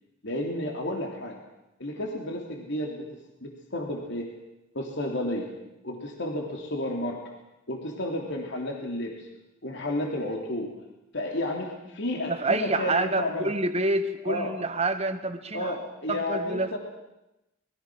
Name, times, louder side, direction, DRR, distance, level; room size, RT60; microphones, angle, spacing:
voice 1, 0.2-1.4 1.8-4.3 4.7-5.5 5.8-7.2 7.7-9.3 9.6-10.7 11.1-13.5 14.2-14.5 15.5-16.8, left 1 dB, 60° left, 1 dB, 3.3 m, -32 dB
voice 2, 12.3-15.7 16.1-16.7, right 2 dB, 30° right, 8 dB, 1.9 m, -27 dB
27.0 x 22.0 x 6.3 m, 0.93 s
head